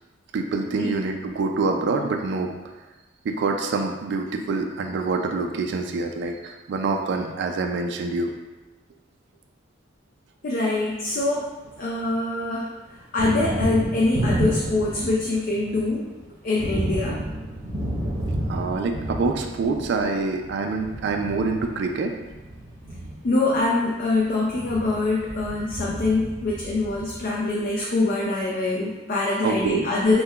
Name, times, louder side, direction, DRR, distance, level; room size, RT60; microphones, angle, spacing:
voice 1, 0.3-2.5 3.2-8.3 18.5-22.2 29.4-29.9, right 3 dB, 65° right, 4 dB, 0.3 m, -26 dB
voice 2, 10.4-11.5 11.8-12.7 13.1-16.1 16.4-17.2 23.2-30.2, left 2 dB, 50° left, -3 dB, 0.4 m, -24 dB
Thunder, 10.9-12.1 12.4-27.7, right 1 dB, 80° right, 0.8 m, -31 dB
5.3 x 2.1 x 2.2 m, 1.1 s
head